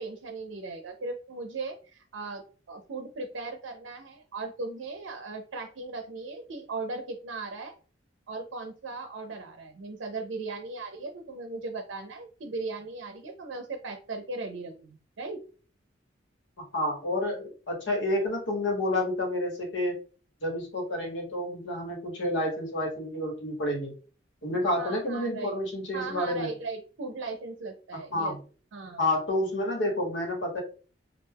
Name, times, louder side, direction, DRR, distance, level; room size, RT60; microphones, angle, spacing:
voice 1, 0.0-7.8 8.3-15.4 24.7-25.6 25.9-28.4 28.7-29.0, right 3 dB, 90° right, 5 dB, 0.5 m, -38 dB
voice 2, 16.7-20.0 20.4-23.9 24.4-26.5 28.1-28.4 29.0-30.6, left 1 dB, 85° left, 0 dB, 1.2 m, -29 dB
2.3 x 2.2 x 3.4 m, 0.38 s
head